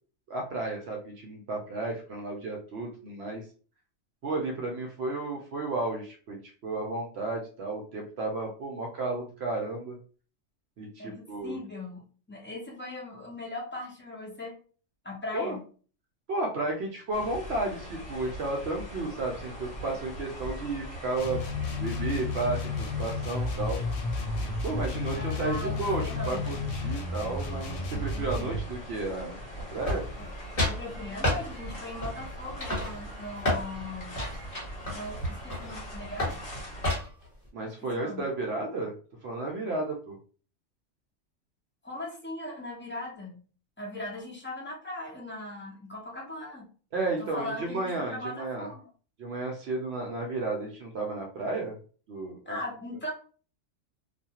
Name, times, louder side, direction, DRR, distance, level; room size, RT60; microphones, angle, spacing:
voice 1, 0.3-3.4 4.2-10.0 10.8-11.6 15.3-15.5 16.3-21.4 21.7-23.8 24.6-29.4 29.7-30.0 37.5-38.9 39.2-40.2 46.9-48.7 49.2-51.7 52.1-52.6, right 2 dB, 65° right, 0 dB, 0.8 m, -33 dB
voice 2, 11.0-14.5 15.0-15.6 25.2-26.5 30.2-30.3 30.6-34.2 34.9-36.4 37.8-38.3 41.8-43.4 43.8-46.7 47.2-48.9 52.5-53.1, left 2 dB, 15° left, -2 dB, 0.5 m, -39 dB
sound 1, 17.1-36.9, right 1 dB, 50° left, 1.5 m, -41 dB
sound 2, 21.1-28.7, left 3 dB, 80° left, 0.9 m, -32 dB
sound 3, 29.8-30.3 30.6-30.8 31.2-31.4 32.0-32.3 32.6-33.7 34.1-35.8 36.2-36.4 36.8-37.3, left 1 dB, 30° left, 1.1 m, -29 dB
2.4 x 2.3 x 2.8 m, 0.40 s
omnidirectional pair, 1.3 m